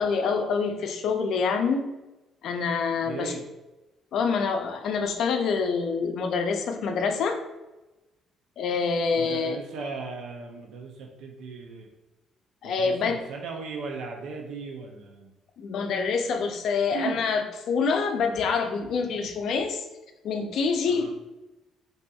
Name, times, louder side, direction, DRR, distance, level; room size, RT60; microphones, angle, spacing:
voice 1, 0.0-1.8 2.4-3.3 4.1-7.4 8.6-9.6 12.6-13.2 15.6-19.9 20.2-21.1, left 5 dB, 65° left, 5 dB, 0.4 m, -26 dB
voice 2, 3.0-3.4 9.2-11.9 12.6-15.3 16.9-17.2 20.9-21.1, right 4 dB, 75° right, 1 dB, 0.4 m, -37 dB
4.0 x 2.6 x 2.3 m, 1.0 s
cardioid pair, 105°, 0 cm